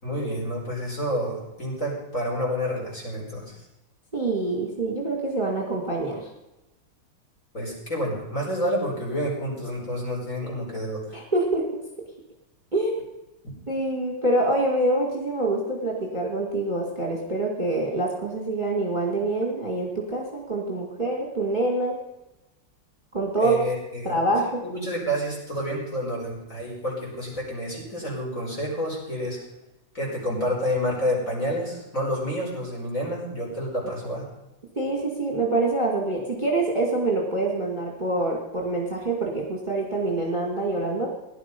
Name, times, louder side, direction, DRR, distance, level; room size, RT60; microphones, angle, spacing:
voice 1, 0.0-3.6 7.5-11.2 23.4-24.2 24.4-29.4 29.9-34.3, equal, 35° left, -3 dB, 5.1 m, -29 dB
voice 2, 4.1-6.3 10.4-10.5 11.1-11.8 12.7-13.0 13.7-22.0 23.1-23.6 24.0-24.6 34.8-41.1, right 2 dB, 20° right, -2 dB, 2.3 m, -25 dB
16.5 x 11.5 x 5.4 m, 0.97 s
omnidirectional pair, 2.4 m